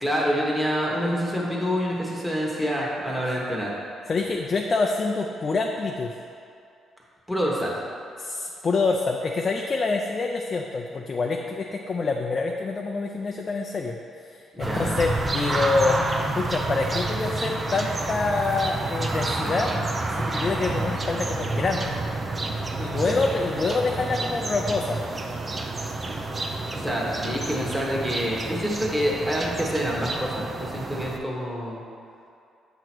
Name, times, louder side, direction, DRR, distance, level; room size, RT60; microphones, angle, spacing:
voice 1, 0.0-3.7 7.3-7.8 14.5-14.9 23.0-23.2 26.7-31.8, equal, ahead, -4 dB, 1.4 m, -27 dB
voice 2, 4.1-6.1 8.2-14.0 14.3-16.0 16.4-19.7 20.2-22.0 22.8-25.0, left 3 dB, 40° left, 1 dB, 0.5 m, -26 dB
sound 1, 14.6-31.2, right 2 dB, 30° right, 0.6 m, -29 dB
8.0 x 2.9 x 6.1 m, 2.5 s
cardioid pair, 90°, 0 cm